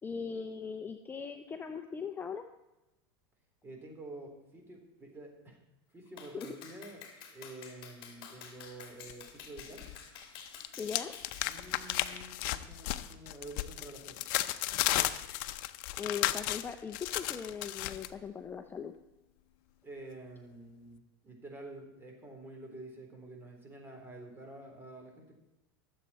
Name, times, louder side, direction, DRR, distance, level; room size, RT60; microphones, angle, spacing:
voice 1, 0.0-2.4 6.3-6.5 10.8-11.1 16.0-18.9, left 6 dB, 15° left, 6 dB, 0.7 m, -39 dB
voice 2, 3.6-5.6 5.9-7.0 7.3-9.9 11.4-14.2 19.8-25.3, right 2 dB, 20° right, 2 dB, 3.7 m, -48 dB
Clapping, 6.2-12.3, left 7 dB, 45° left, 2.9 m, -50 dB
sound 1, 9.1-10.0 10.2-18.1, left 15 dB, 60° left, 0.7 m, -34 dB
22.5 x 7.6 x 4.3 m, 0.95 s
supercardioid pair, 125°, 12 cm